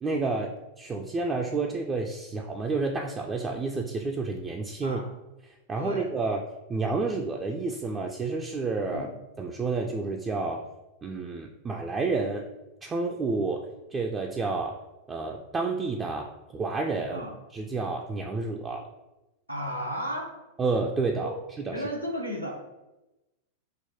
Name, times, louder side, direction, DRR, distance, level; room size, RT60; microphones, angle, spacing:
voice 1, 0.0-5.0 5.7-6.4 6.7-9.1 9.4-10.7 11.0-12.5 12.8-14.8 15.1-17.2 17.5-18.9 20.6-21.3 21.6-21.8, right 3 dB, 20° right, 1 dB, 0.3 m, -30 dB
voice 2, 19.5-20.4 21.2-21.3 21.7-22.6, equal, 90° right, -1 dB, 0.8 m, -33 dB
5.7 x 2.1 x 2.8 m, 1.0 s
figure-of-eight pair, 90°, 0 cm